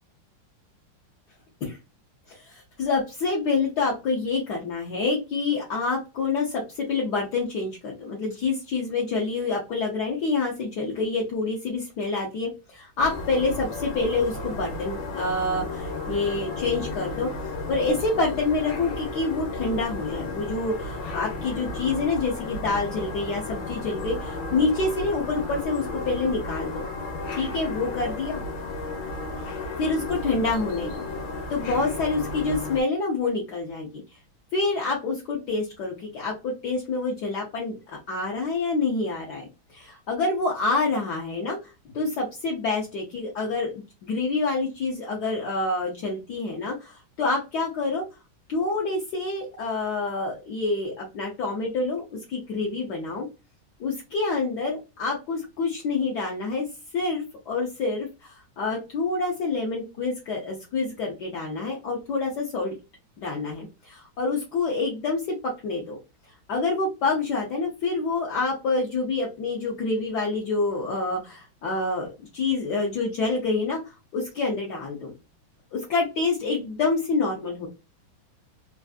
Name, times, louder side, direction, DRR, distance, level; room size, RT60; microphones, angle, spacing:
voice 1, 2.3-17.3 17.7-26.8 27.3-28.4 29.4-31.0 31.5-34.0 34.5-37.7 38.1-48.0 48.5-53.3 53.8-56.7 56.9-62.7 63.2-65.4 65.6-66.0 66.5-75.1 75.7-77.7, left 3 dB, 65° left, -2 dB, 1.2 m, -27 dB
sound 1, 13.0-32.8, left 2 dB, 85° left, 1.6 m, -33 dB
3.4 x 2.4 x 2.3 m, 0.27 s
omnidirectional pair, 2.1 m